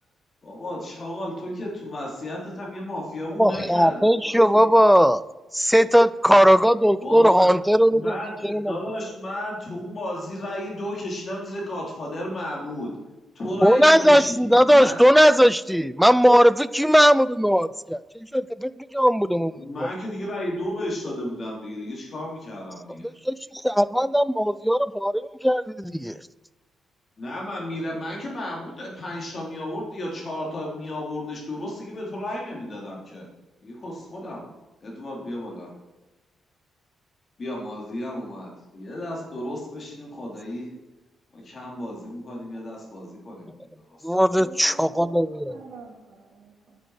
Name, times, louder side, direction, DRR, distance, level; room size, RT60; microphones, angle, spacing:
voice 1, 0.4-4.7 7.0-7.5 7.9-12.9 13.3-15.0 19.6-23.1 27.2-33.2 33.6-34.4 34.8-35.7 37.4-40.7 41.3-44.1, left 1 dB, 40° left, -2 dB, 3.6 m, -33 dB
voice 2, 3.4-5.2 5.5-8.1 8.4-8.8 13.6-18.0 18.3-19.9 23.0-23.4 23.6-26.2 44.0-45.3, equal, ahead, 16 dB, 0.4 m, -18 dB
voice 3, 44.4-46.8, right 3 dB, 60° right, -1 dB, 2.0 m, -45 dB
9.3 x 9.1 x 5.0 m, 1.1 s
cardioid pair, 115°, 0 cm